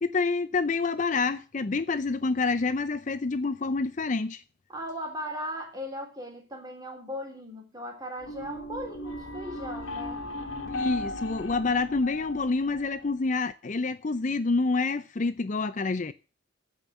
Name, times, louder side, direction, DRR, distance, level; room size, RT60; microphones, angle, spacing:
voice 1, 0.0-4.4 10.6-16.1, left 3 dB, 40° left, 0.5 m, -27 dB
voice 2, 4.7-10.2, equal, 20° right, 3.6 m, -38 dB
sound 1, 8.2-13.3, left 1 dB, 85° left, 1.8 m, -37 dB
14.5 x 5.6 x 8.0 m
head